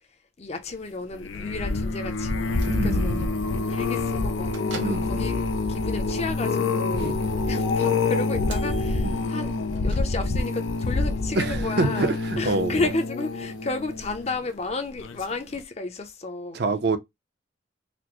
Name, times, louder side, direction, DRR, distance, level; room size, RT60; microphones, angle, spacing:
voice 1, 0.4-3.4 3.7-4.5 4.8-7.1 7.5-16.6, left 3 dB, 35° left, 0.6 m, -32 dB
sound 1, 1.1-14.5 15.0-15.3 15.6-15.7, left 3 dB, 90° left, 0.5 m, -27 dB
Bell / Microwave oven, 2.4-10.6, right 3 dB, 75° right, 1.2 m, -47 dB
voice 2, 2.6-3.3 4.8-5.3 6.9-7.1 9.0-9.2 11.3-12.9 16.5-17.0, right 3 dB, 55° right, 0.5 m, -26 dB
4.2 x 2.0 x 2.9 m
head